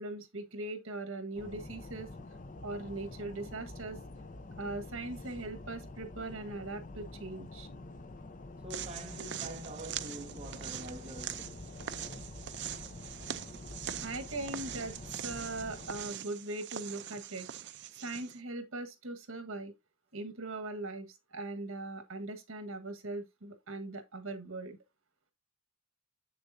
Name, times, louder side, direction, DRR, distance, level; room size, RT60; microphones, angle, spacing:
voice 1, 0.0-2.1 2.6-4.0 4.6-7.7 14.0-14.9 15.2-17.5 18.0-19.7 20.1-24.8, right 2 dB, 85° right, 1.5 m, -40 dB
sound 1, 1.3-16.1, left 2 dB, 40° left, 0.7 m, -47 dB
voice 2, 8.6-11.6, right 1 dB, 30° right, 1.6 m, -45 dB
sound 2, 8.7-18.4, right 10 dB, 60° right, 0.5 m, -43 dB
7.6 x 6.7 x 2.7 m
head